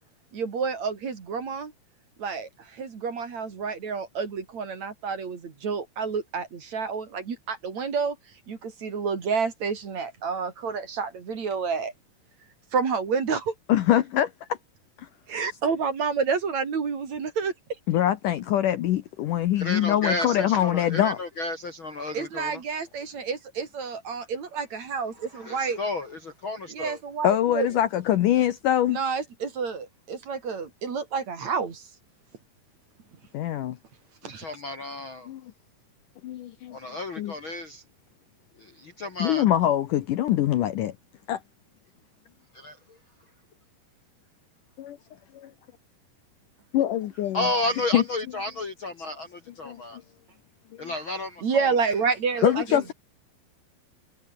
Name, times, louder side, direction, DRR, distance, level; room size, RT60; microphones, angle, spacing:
voice 1, 0.3-1.7 2.2-8.2 8.5-11.9 12.7-13.5 15.3-17.5 22.1-25.8 26.7-27.7 28.9-31.8 34.2-34.5 51.4-52.9, right 5 dB, 45° right, 4.1 m, -29 dB
voice 2, 13.7-14.6 15.0-15.1 17.9-21.2 27.2-29.0 33.3-33.8 35.3-35.4 36.2-36.8 37.2-37.3 39.2-40.9 41.3-41.4 44.8-45.0 45.3-45.5 46.7-47.4 47.9-48.0 49.7-49.8 52.4-52.9, left 12 dB, 70° left, 2.2 m, -23 dB
voice 3, 19.6-22.6 25.1-27.0 34.2-35.3 36.7-37.8 38.6-39.4 42.5-43.0 47.3-50.0 50.8-51.7 52.4-52.5, left 2 dB, 40° left, 2.0 m, -32 dB
omnidirectional pair, 4.6 m